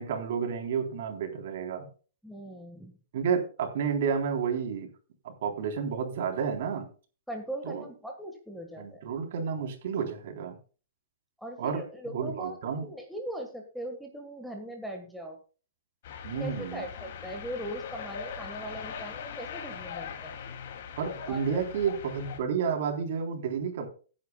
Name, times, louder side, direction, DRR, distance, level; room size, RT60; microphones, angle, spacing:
voice 1, 0.0-1.9 3.1-4.9 5.2-6.9 7.6-7.9 8.8-10.6 11.6-12.9 16.2-16.8 21.0-23.9, right 6 dB, 55° right, 4 dB, 3.7 m, -31 dB
voice 2, 2.2-2.9 7.3-9.0 11.4-15.4 16.4-20.4 21.3-21.6, right 1 dB, ahead, 1 dB, 1.6 m, -40 dB
sound 1, 16.0-22.4, left 7 dB, 55° left, 2.6 m, -41 dB
17.0 x 9.8 x 2.3 m, 0.37 s
hypercardioid pair, 160°, 0 cm